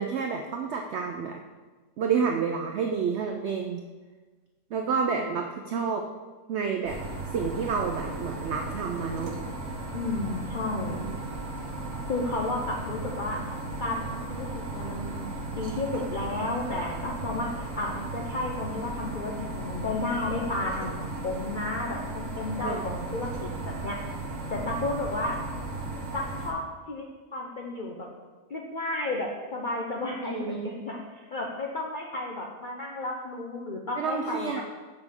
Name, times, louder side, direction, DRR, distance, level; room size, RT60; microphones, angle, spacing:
voice 1, 0.0-1.4 2.0-3.8 4.7-6.1 6.5-7.0 7.3-9.3 11.0-11.2 22.6-22.8 30.2-30.8 34.0-34.6, right 6 dB, 80° right, 4 dB, 0.6 m, -29 dB
sound 1, 6.8-26.5, right 2 dB, 60° right, 1.3 m, -36 dB
voice 2, 9.9-11.1 12.1-13.4 13.8-14.5 14.7-15.3 15.5-17.5 17.8-24.0 24.5-25.4 26.1-26.6 26.9-27.0 27.3-28.1 28.5-34.6, left 2 dB, 65° left, -1 dB, 0.4 m, -32 dB
6.6 x 5.9 x 3.6 m, 1.3 s
omnidirectional pair, 1.7 m